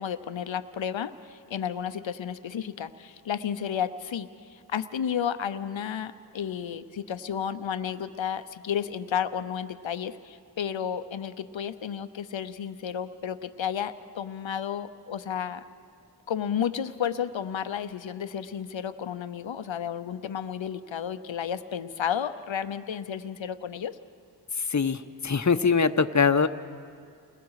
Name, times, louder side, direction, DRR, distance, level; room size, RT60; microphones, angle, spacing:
voice 1, 0.0-15.6 16.3-24.0, left 8 dB, 85° left, 11 dB, 0.8 m, -32 dB
voice 2, 24.5-26.5, left 5 dB, 40° left, 10 dB, 1.0 m, -23 dB
29.0 x 21.0 x 4.9 m, 2.3 s
cardioid pair, 40°, 45 cm